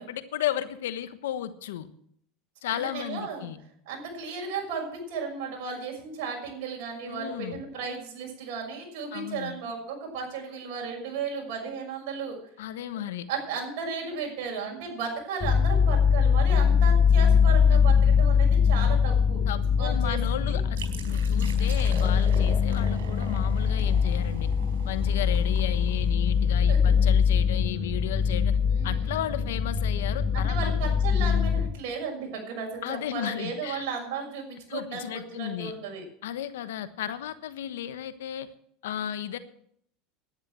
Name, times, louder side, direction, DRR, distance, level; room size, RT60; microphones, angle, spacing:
voice 1, 0.0-1.9 2.6-3.6 7.1-7.6 9.1-9.6 12.6-13.3 17.7-17.8 19.5-20.8 21.0-24.5 24.8-28.6 28.8-30.9 32.8-33.9 34.7-35.7 36.2-38.5 38.8-39.4, left 11 dB, 85° left, 12 dB, 1.2 m, -34 dB
voice 2, 2.7-3.5 3.9-12.4 13.3-19.4 19.8-20.6 26.7-26.9 28.6-29.1 30.3-36.0, right 5 dB, 65° right, 1 dB, 6.3 m, -35 dB
sound 1, 15.4-31.7, left 6 dB, 30° left, 1.7 m, -22 dB
sound 2, 20.7-26.3, right 3 dB, 90° right, 4.4 m, -42 dB
11.0 x 9.9 x 7.6 m, 0.68 s
supercardioid pair, 120°, 0 cm